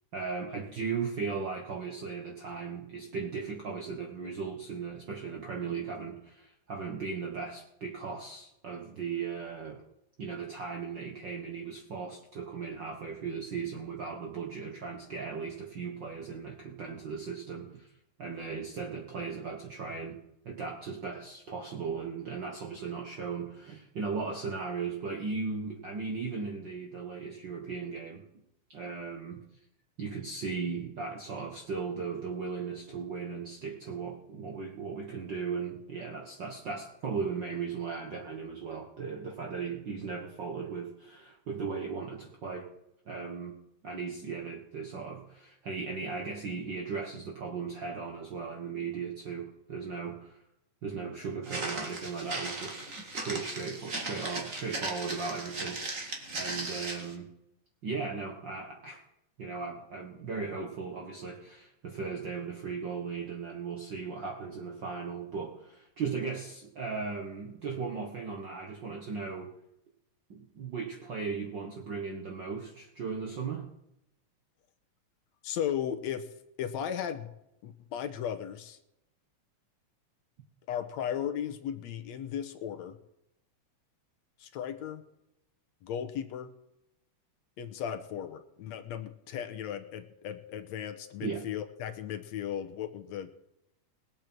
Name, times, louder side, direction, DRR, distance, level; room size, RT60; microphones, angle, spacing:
voice 1, 0.1-9.8 10.2-17.9 18.2-20.2 20.4-28.2 28.7-29.4 30.0-42.7 43.1-43.6 43.8-50.4 50.8-57.3 57.8-59.0 59.4-69.5 70.3-73.7 91.2-91.4, right 5 dB, 50° right, 0 dB, 1.5 m, -37 dB
Walk footsteps, 51.4-57.1, right 2 dB, 30° right, 2.1 m, -37 dB
voice 2, 75.4-76.3 76.6-77.3 77.6-78.8 80.7-83.0 84.4-85.0 85.8-86.5 87.6-93.3, left 9 dB, 70° left, 7 dB, 2.1 m, -36 dB
21.0 x 8.1 x 4.6 m, 0.84 s
omnidirectional pair, 3.4 m